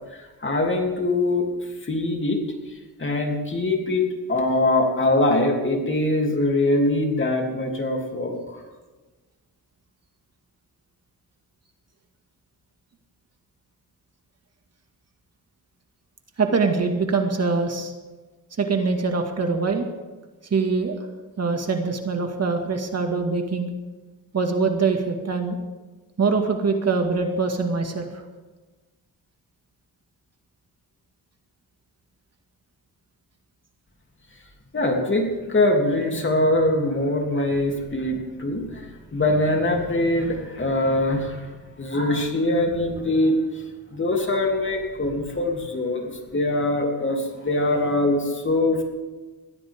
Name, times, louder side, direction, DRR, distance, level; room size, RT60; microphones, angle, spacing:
voice 1, 0.1-1.5 1.8-2.4 3.0-8.6 34.7-41.5 41.8-43.3 43.9-48.8, left 2 dB, 30° left, 1 dB, 3.1 m, -23 dB
voice 2, 16.4-17.9 18.6-19.9 20.5-21.0 21.4-23.7 24.3-25.6 26.2-28.2, right 4 dB, 40° right, 4 dB, 2.1 m, -23 dB
22.0 x 16.0 x 3.7 m, 1.3 s
cardioid pair, 105°, 37 cm